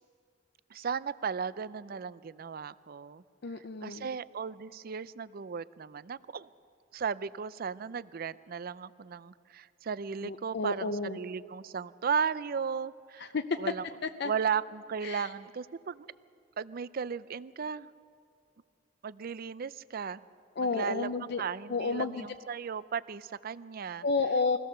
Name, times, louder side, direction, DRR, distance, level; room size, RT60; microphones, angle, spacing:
voice 1, 0.7-3.2 3.8-6.5 6.9-13.3 13.6-13.8 14.2-16.1 16.6-17.9 19.0-20.2 20.6-21.1 21.4-24.0, right 6 dB, 50° right, 18 dB, 0.4 m, -35 dB
voice 2, 3.4-4.1 10.2-11.2 13.2-13.7 14.0-14.3 15.0-15.3 20.6-21.4 21.7-22.3 24.0-24.6, left 4 dB, 60° left, 8 dB, 0.6 m, -31 dB
22.5 x 17.0 x 6.8 m, 2.3 s
head